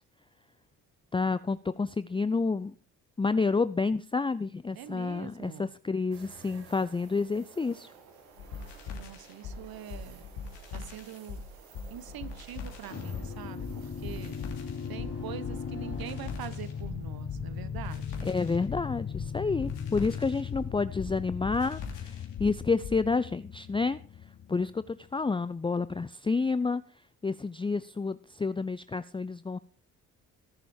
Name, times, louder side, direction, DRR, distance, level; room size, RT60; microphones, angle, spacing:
voice 1, 1.1-2.7 3.2-7.9 18.2-24.0 24.5-26.8 27.2-29.6, left 4 dB, 10° left, 14 dB, 0.5 m, -29 dB
voice 2, 4.7-5.7 8.9-10.2 10.7-11.4 11.9-14.4 14.6-18.3, right 10 dB, 60° right, 14 dB, 1.4 m, -44 dB
sound 1, 6.1-19.1 19.5-19.6 22.1-22.5, right 5 dB, 85° right, 2.1 m, -55 dB
sound 2, 8.4-23.1, left 5 dB, 80° left, 3.1 m, -42 dB
sound 3, 12.9-25.1, left 7 dB, 35° left, 1.3 m, -38 dB
19.0 x 7.0 x 4.8 m, 0.42 s
hypercardioid pair, 50°, 42 cm